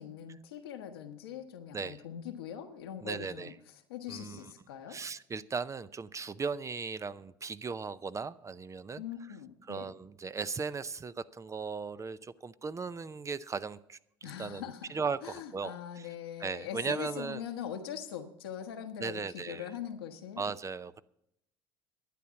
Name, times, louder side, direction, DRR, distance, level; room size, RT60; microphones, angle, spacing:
voice 1, 0.0-3.5 3.9-5.0 9.0-9.9 14.2-20.5, left 9 dB, 85° left, 4 dB, 1.3 m, -42 dB
voice 2, 3.0-3.5 4.1-4.4 4.9-9.0 9.7-14.6 14.9-16.1 16.4-17.4 19.0-19.7 20.4-21.0, right 5 dB, 25° right, 15 dB, 0.6 m, -37 dB
12.0 x 9.4 x 7.0 m, 0.79 s
hypercardioid pair, 70°, 12 cm